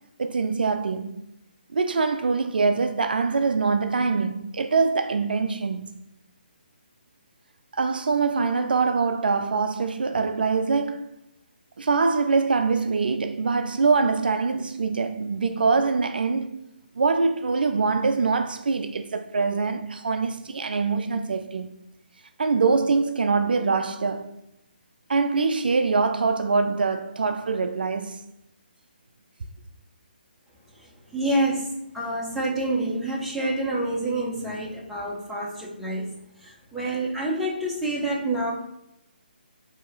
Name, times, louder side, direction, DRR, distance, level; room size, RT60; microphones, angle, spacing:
voice 1, 0.2-1.2 1.7-5.8 7.7-11.0 11.8-16.6 17.0-21.7 22.4-24.3 25.1-28.2, right 4 dB, 65° right, 0.3 m, -24 dB
voice 2, 30.7-38.5, right 1 dB, ahead, 0.7 m, -28 dB
4.5 x 2.8 x 3.0 m
figure-of-eight pair, 145°, 5 cm